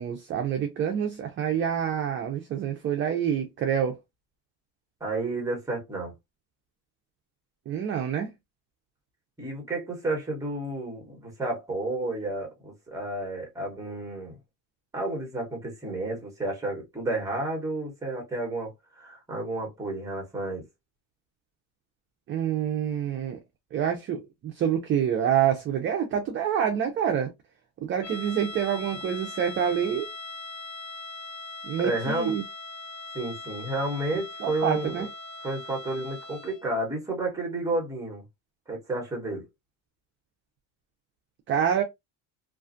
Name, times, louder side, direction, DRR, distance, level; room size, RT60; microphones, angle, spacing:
voice 1, 0.0-4.0 7.7-8.3 22.3-23.4 23.7-27.3 27.8-30.1 31.6-32.4 34.4-35.1 41.5-41.8, right 8 dB, 30° right, 0.4 m, -27 dB
voice 2, 5.0-6.1 9.4-14.4 14.9-20.6 31.8-32.3 33.1-35.1 35.4-38.2 38.7-39.5, right 2 dB, 10° right, 1.1 m, -31 dB
sound 1, 28.0-36.7, left 2 dB, 40° left, 1.0 m, -40 dB
2.5 x 2.3 x 2.5 m
cardioid pair, 135°, 41 cm